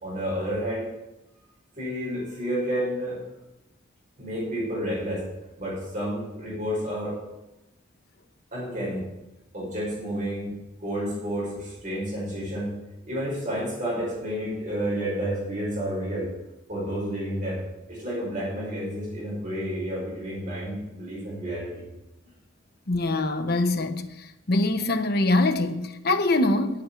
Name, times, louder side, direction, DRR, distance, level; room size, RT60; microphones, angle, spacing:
voice 1, 0.0-0.9 1.8-3.2 4.2-5.3 5.6-7.2 8.5-9.0 9.5-10.5 10.8-12.7 13.0-16.3 16.7-17.6 17.9-21.8, equal, 40° right, 5.5 m, -30 dB
voice 2, 22.9-24.1 24.5-26.8, left 2 dB, 50° left, 1.0 m, -23 dB
8.7 x 8.5 x 9.1 m
head